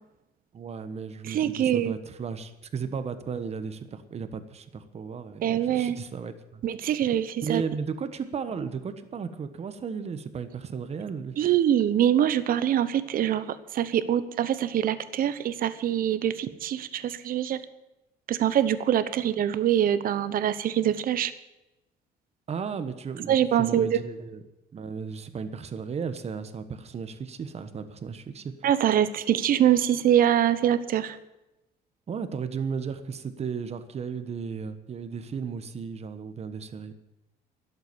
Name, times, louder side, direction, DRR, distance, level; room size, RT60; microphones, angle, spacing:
voice 1, 0.5-6.6 7.4-11.6 22.5-24.4 24.7-28.5 32.1-36.9, right 6 dB, 40° right, 10 dB, 1.3 m, -35 dB
voice 2, 1.2-1.9 5.4-6.0 6.6-7.6 11.4-17.6 18.3-21.3 23.3-24.0 28.6-31.2, right 10 dB, 55° right, 14 dB, 0.9 m, -24 dB
12.0 x 8.1 x 9.7 m, 0.96 s
cardioid pair, 110°, 17 cm